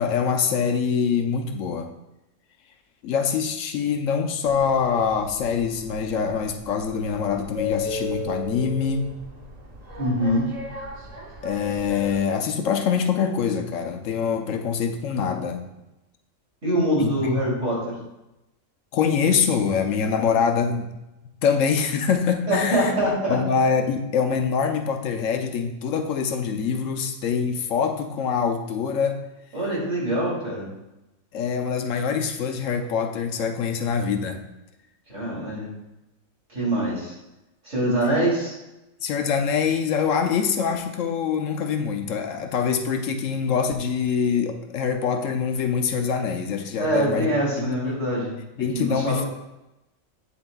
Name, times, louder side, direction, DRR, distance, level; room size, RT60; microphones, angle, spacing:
voice 1, 0.0-1.9 3.0-9.1 11.4-15.6 17.0-17.5 18.9-20.9 21.4-22.9 23.3-29.2 31.3-34.4 39.0-47.3 47.6-48.0 48.6-49.2, left 6 dB, 75° left, 5 dB, 1.0 m, -24 dB
sound 1, 4.5-12.2, left 2 dB, 35° right, 0.8 m, -36 dB
voice 2, 10.0-10.5 16.6-17.9 22.5-23.4 29.5-30.7 35.1-35.7 36.5-37.1 37.6-38.5 46.8-48.4 48.7-49.3, right 1 dB, 65° right, -6 dB, 3.3 m, -24 dB
8.5 x 7.0 x 2.3 m, 0.95 s
omnidirectional pair, 1.4 m